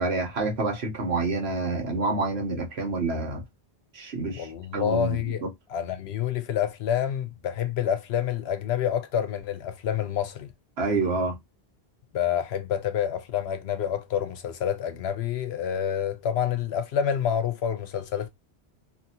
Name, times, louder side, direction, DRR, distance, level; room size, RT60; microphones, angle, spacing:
voice 1, 0.0-3.4 3.9-5.5 10.8-11.4, right 3 dB, 80° right, 1.3 m, -28 dB
voice 2, 4.3-5.4 5.7-10.5 12.1-18.3, left 9 dB, 85° left, 0.9 m, -28 dB
2.8 x 2.6 x 2.8 m
omnidirectional pair, 1.1 m